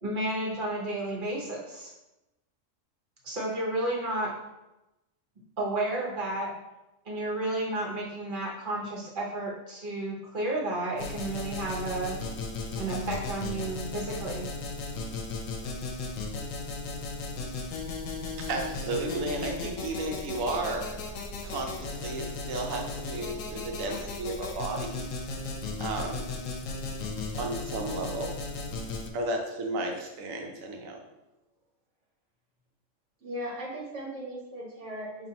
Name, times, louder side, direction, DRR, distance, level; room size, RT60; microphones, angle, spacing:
voice 1, 0.0-1.9 3.2-4.3 5.6-6.5 7.0-12.2 12.8-14.5, right 2 dB, 40° right, -3 dB, 1.1 m, -32 dB
sound 1, 11.0-29.1, left 3 dB, 85° left, 1.0 m, -36 dB
voice 2, 18.4-25.1 25.8-26.3 27.4-28.4 29.1-31.0, right 2 dB, 85° right, 2 dB, 1.1 m, -33 dB
voice 3, 33.2-35.3, equal, 65° right, -4 dB, 1.2 m, -38 dB
5.4 x 2.8 x 2.8 m, 0.97 s
omnidirectional pair, 1.3 m